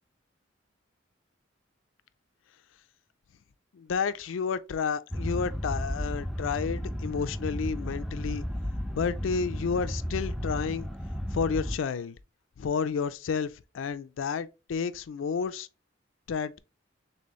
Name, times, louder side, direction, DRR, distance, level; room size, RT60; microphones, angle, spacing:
voice 1, 3.7-8.4 8.9-10.9 11.3-12.2 12.6-15.7 16.3-16.6, left 5 dB, 85° left, 0.4 m, -31 dB
sound 1, 5.1-11.8, equal, ahead, 0.3 m, -33 dB
4.3 x 3.4 x 3.0 m
head